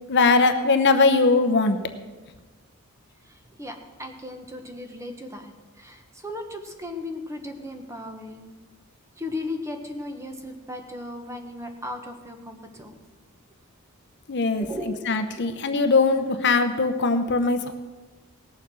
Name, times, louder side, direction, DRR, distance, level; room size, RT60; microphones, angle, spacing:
voice 1, 0.1-1.8 14.3-14.6 15.1-17.7, left 3 dB, 50° left, 8 dB, 0.8 m, -20 dB
voice 2, 3.2-8.6 9.2-13.0 14.6-15.0 15.4-15.5, left 2 dB, 15° right, 4 dB, 1.2 m, -36 dB
18.5 x 7.1 x 6.2 m, 1.2 s
head